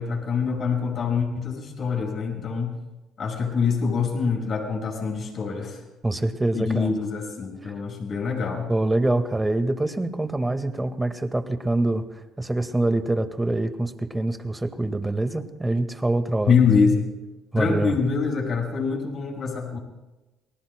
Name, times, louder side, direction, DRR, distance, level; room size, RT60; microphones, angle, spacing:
voice 1, 0.0-2.8 3.2-5.8 6.5-8.7 16.5-17.1 17.6-19.8, left 5 dB, 50° left, 1 dB, 5.9 m, -24 dB
voice 2, 6.0-6.9 8.7-16.6 17.5-17.9, right 2 dB, 15° right, 8 dB, 1.8 m, -25 dB
29.5 x 20.0 x 2.2 m, 1.1 s
hypercardioid pair, 60°, 0 cm